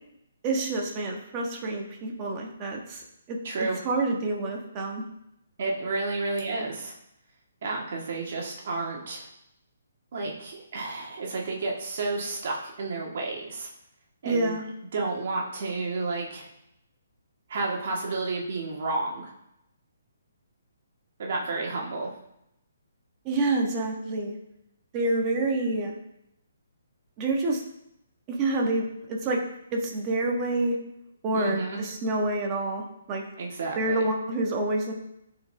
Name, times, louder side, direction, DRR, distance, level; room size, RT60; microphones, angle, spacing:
voice 1, 0.4-3.4 3.8-5.0 14.2-14.6 23.2-24.4 24.9-25.9 27.2-27.6 28.3-29.4 29.7-30.8 31.2-33.2 33.8-34.9, right 2 dB, 20° right, 0 dB, 1.3 m, -27 dB
voice 2, 3.4-3.8 5.6-6.9 7.6-9.3 10.1-13.7 14.2-14.6 14.9-16.5 17.5-19.3 21.2-22.1 31.3-31.8 33.4-34.1, right 3 dB, 50° right, -1 dB, 1.7 m, -31 dB
14.5 x 4.9 x 3.4 m, 0.81 s
hypercardioid pair, 170°, 0 cm